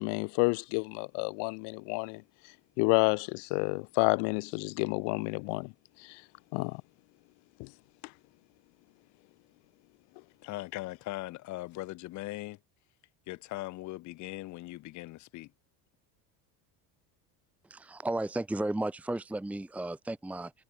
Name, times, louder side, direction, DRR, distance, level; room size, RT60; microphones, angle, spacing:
voice 1, 0.0-2.2 2.8-5.7 6.0-6.2 6.5-6.8 7.6-7.7, left 38 dB, 70° left, 0.8 m, -29 dB
voice 2, 10.4-12.6 13.3-15.5, left 18 dB, 40° left, 1.0 m, -40 dB
voice 3, 17.7-20.5, right 2 dB, 5° right, 1.2 m, -34 dB
cardioid pair, 180°, 44 cm